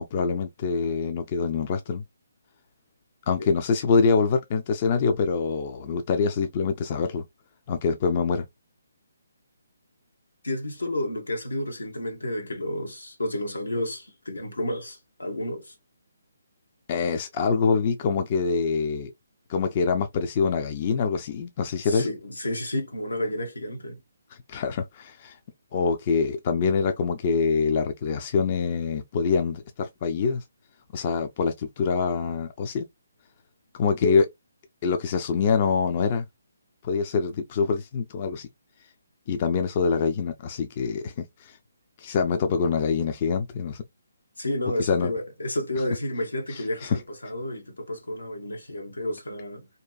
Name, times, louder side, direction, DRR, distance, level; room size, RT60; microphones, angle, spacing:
voice 1, 0.0-2.0 3.3-7.2 7.7-8.5 16.9-19.1 19.5-22.1 24.5-25.4 25.7-30.4 30.9-32.9 33.7-34.3 34.8-36.3 36.8-38.5 39.3-41.6 42.0-43.8 44.8-45.1 46.5-47.0, left 5 dB, 35° left, 0.4 m, -25 dB
voice 2, 10.4-15.7 21.8-24.0 44.4-49.7, left 1 dB, 85° left, 1.0 m, -31 dB
2.7 x 2.5 x 2.3 m
figure-of-eight pair, 145°, 0 cm